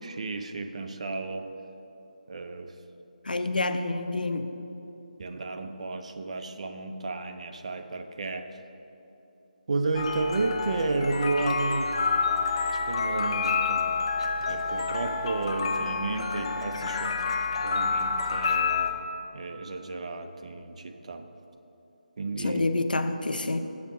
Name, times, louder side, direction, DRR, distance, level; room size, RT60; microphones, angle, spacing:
voice 1, 0.0-1.5 2.3-2.8 5.2-8.6 9.7-12.0 12.9-13.9 14.5-17.3 17.6-19.0 19.3-21.3 22.2-22.6, right 3 dB, 50° right, 7 dB, 0.5 m, -32 dB
voice 2, 3.2-4.5 22.4-23.6, left 2 dB, 85° left, 9 dB, 0.5 m, -28 dB
sound 1, 9.9-18.9, left 5 dB, 40° left, 0.5 m, -28 dB
7.4 x 5.3 x 6.1 m, 3.0 s
figure-of-eight pair, 160°, 5 cm